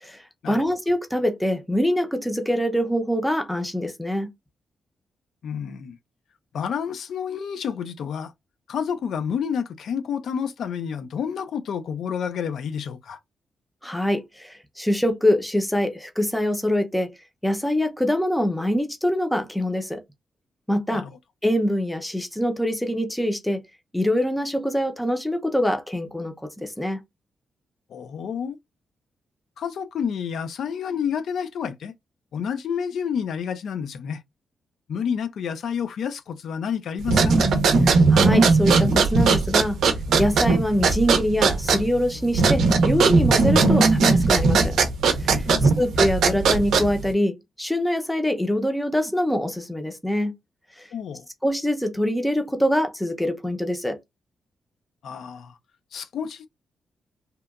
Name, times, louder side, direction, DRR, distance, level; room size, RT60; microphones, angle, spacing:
voice 1, 0.0-4.3 13.8-17.1 17.4-20.0 20.7-21.0 21.4-23.6 23.9-27.0 37.8-39.8 40.2-44.8 45.2-50.4 51.4-54.0, equal, 5° left, 0.5 m, -24 dB
voice 2, 5.4-6.0 6.5-8.3 8.7-13.2 20.9-21.1 27.9-28.6 29.6-31.9 32.3-34.2 34.9-37.4 45.5-45.8 50.9-51.3 55.0-55.6 55.9-56.5, left 7 dB, 70° left, 0.3 m, -29 dB
sound 1, 37.0-47.1, right 4 dB, 90° right, 0.5 m, -19 dB
2.8 x 2.1 x 2.3 m
wide cardioid pair, 150°, 0 cm